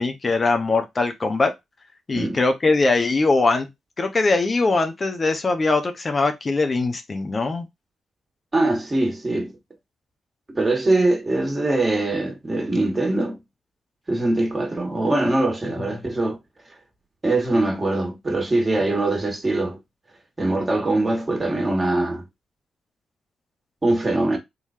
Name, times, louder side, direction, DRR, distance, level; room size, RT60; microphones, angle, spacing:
voice 1, 0.0-1.5 2.1-3.7 4.0-7.7, left 3 dB, 40° left, 0.9 m, -21 dB
voice 2, 8.5-9.6 10.5-13.4 14.1-16.4 17.2-19.8 20.4-22.3 23.8-24.4, right 2 dB, 30° right, 1.9 m, -22 dB
3.9 x 3.0 x 2.6 m
supercardioid pair, 45°, 0 cm